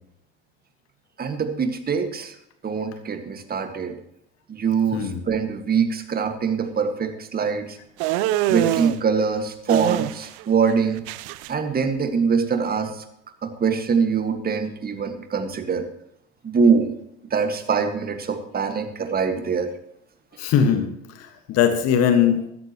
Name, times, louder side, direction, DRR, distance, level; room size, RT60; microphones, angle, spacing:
voice 1, 1.2-2.3 2.6-3.9 4.5-7.8 8.5-11.0 11.5-13.0 13.4-15.8 16.4-17.0 17.3-19.7, right 5 dB, 25° right, 7 dB, 1.9 m, -23 dB
sound 1, 8.0-9.0 9.7-10.4 10.7-11.5, right 15 dB, 55° right, 0.7 m, -24 dB
voice 2, 20.4-22.4, left 8 dB, 45° left, 7 dB, 1.7 m, -21 dB
15.5 x 13.5 x 3.1 m, 0.78 s
hypercardioid pair, 75°, 34 cm